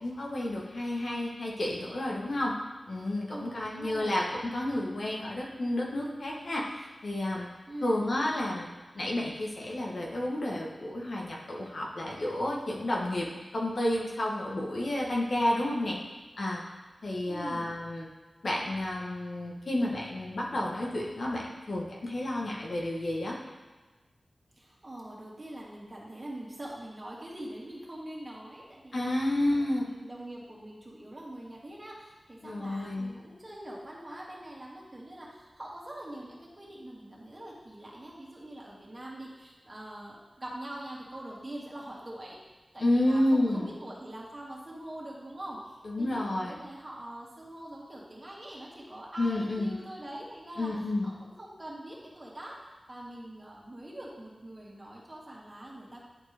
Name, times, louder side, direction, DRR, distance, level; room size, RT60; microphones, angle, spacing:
voice 1, 0.0-2.6 2.9-6.7 7.0-7.5 7.8-8.7 8.9-16.0 16.4-16.6 17.0-18.1 18.4-23.4 28.9-30.0 32.4-33.1 42.8-43.7 45.8-46.6 49.2-49.7 50.6-51.1, left 1 dB, 70° left, -3 dB, 1.3 m, -30 dB
voice 2, 3.3-4.2 7.7-8.1 17.3-17.7 24.6-29.1 29.5-42.4 42.7-50.7 51.0-52.5 52.9-56.0, right 1 dB, 35° right, -4 dB, 2.0 m, -43 dB
10.5 x 4.4 x 3.5 m, 1.3 s
wide cardioid pair, 55°, 0 cm